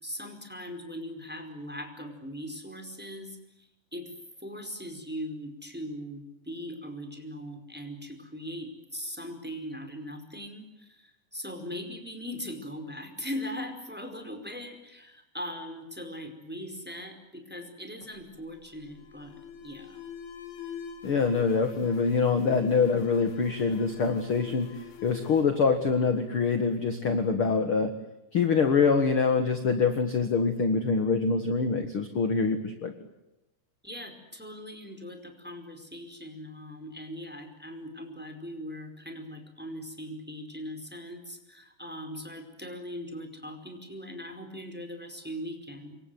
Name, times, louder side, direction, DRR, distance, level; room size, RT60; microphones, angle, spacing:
voice 1, 0.0-4.1 4.4-20.0 33.8-46.0, equal, ahead, 7 dB, 4.4 m, -40 dB
Alarm, 18.0-26.6, left 7 dB, 80° left, 4.8 m, -45 dB
voice 2, 21.0-24.7 25.0-27.9 28.3-32.9, left 5 dB, 45° left, 8 dB, 2.0 m, -25 dB
28.5 x 24.5 x 7.9 m, 0.93 s
omnidirectional pair, 4.6 m